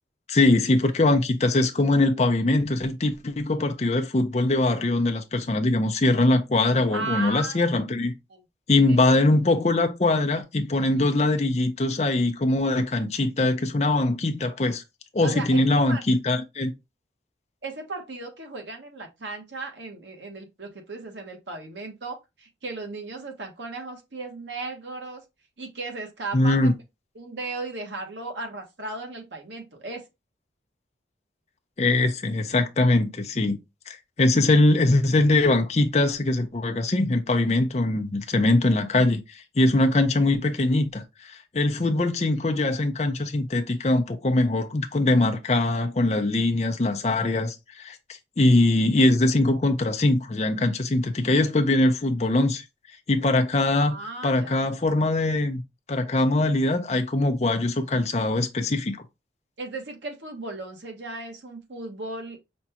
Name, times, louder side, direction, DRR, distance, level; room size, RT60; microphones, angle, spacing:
voice 1, 0.3-8.1 8.7-14.8 15.1-16.7 26.3-26.7 31.8-33.6 33.9-48.0 48.4-52.6 53.1-55.6 55.9-59.0, left 2 dB, 35° left, 0.5 m, -22 dB
voice 2, 6.9-7.6 8.3-8.4 8.7-9.0 9.2-9.3 15.2-16.0 17.6-25.2 25.6-26.7 27.1-30.0 53.9-54.7 59.6-62.4, right 3 dB, 80° right, 1.0 m, -36 dB
5.2 x 2.3 x 2.9 m
head